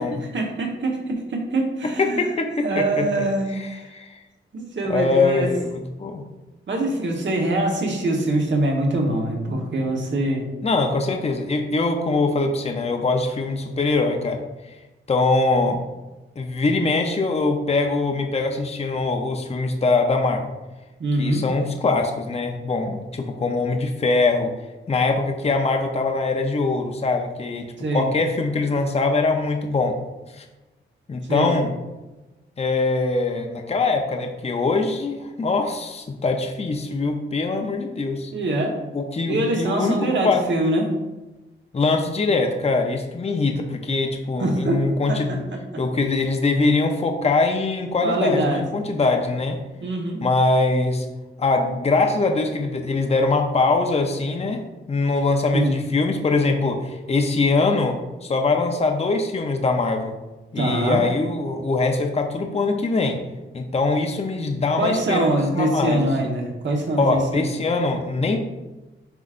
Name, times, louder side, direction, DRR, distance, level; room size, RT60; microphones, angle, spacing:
voice 1, 0.3-2.2 2.6-3.5 4.5-5.5 6.7-10.5 21.0-21.4 27.8-28.1 31.3-31.5 38.3-38.8 39.3-40.9 44.4-45.8 48.0-48.6 49.8-50.2 55.5-55.8 60.5-61.0 64.8-67.5, right 1 dB, 60° right, 1 dB, 1.3 m, -24 dB
voice 2, 1.8-3.3 3.6-4.2 4.9-6.2 10.6-14.4 15.1-15.8 16.4-20.5 21.2-24.5 24.9-27.7 27.9-30.0 30.3-30.4 31.1-31.7 32.6-38.3 38.9-40.4 41.7-45.4 45.8-49.6 50.2-51.1 51.4-60.1 60.5-63.2 63.5-66.1 67.0-68.4, left 3 dB, 30° left, 4 dB, 0.6 m, -22 dB
8.0 x 4.9 x 2.5 m, 1.1 s
wide cardioid pair, 120°, 21 cm